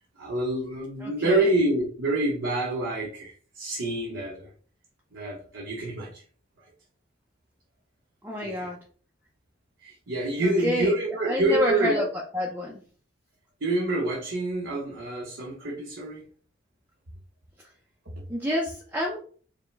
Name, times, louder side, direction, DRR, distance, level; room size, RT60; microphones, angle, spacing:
voice 1, 0.2-4.5 5.1-6.2 8.4-8.7 9.8-12.1 13.6-16.3 18.1-18.2, right 2 dB, 85° right, -3 dB, 1.0 m, -27 dB
voice 2, 1.0-1.5 8.2-8.8 10.4-10.9 11.3-12.1 12.3-12.8 18.3-19.2, left 1 dB, 10° right, -2 dB, 0.5 m, -28 dB
5.0 x 2.2 x 3.3 m, 0.43 s
head